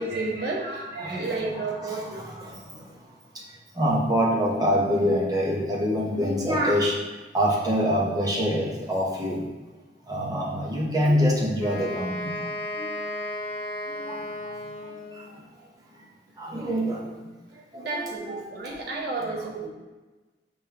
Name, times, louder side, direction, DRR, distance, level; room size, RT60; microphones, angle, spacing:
voice 1, 0.0-2.2 17.7-19.7, right 3 dB, 65° right, -2 dB, 1.0 m, -31 dB
voice 2, 1.0-2.8 3.8-6.9 7.3-9.4 10.1-12.3 12.7-12.9 13.9-14.2 16.4-17.2 17.7-18.8 19.2-19.4, equal, 20° right, -4 dB, 0.8 m, -26 dB
Wind instrument woodwind instrument, 11.6-15.3, left 1 dB, 15° left, 0.9 m, -34 dB
5.2 x 3.5 x 2.9 m, 1.2 s
head